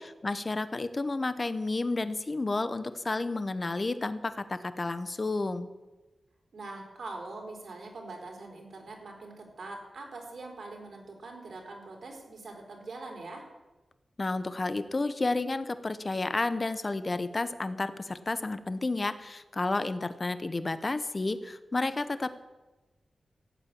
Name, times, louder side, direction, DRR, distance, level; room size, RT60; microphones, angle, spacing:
voice 1, 0.0-5.7 14.2-22.3, left 2 dB, 30° left, 12 dB, 0.9 m, -31 dB
voice 2, 6.5-13.5, right 2 dB, 70° right, 1 dB, 4.0 m, -43 dB
15.5 x 8.7 x 8.6 m, 1.1 s
wide cardioid pair, 130°, 0 cm